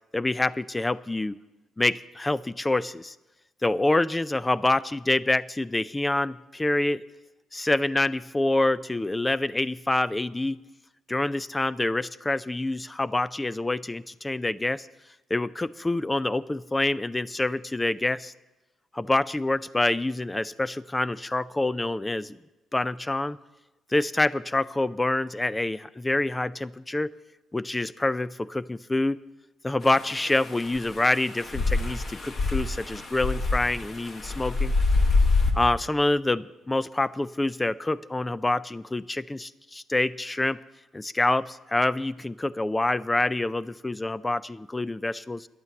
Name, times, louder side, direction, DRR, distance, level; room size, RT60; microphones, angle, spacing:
voice 1, 0.1-1.4 1.8-3.1 3.6-7.0 7.5-10.6 11.1-14.9 15.3-18.3 18.9-22.4 22.7-23.4 23.9-27.1 27.5-29.2 29.6-34.7 35.5-40.6 40.9-45.5, left 2 dB, 15° left, 18 dB, 0.4 m, -26 dB
sound 1, 29.9-35.5, left 3 dB, 45° left, 1.6 m, -26 dB
11.0 x 9.0 x 7.7 m, 1.0 s
cardioid pair, 90°, 0 cm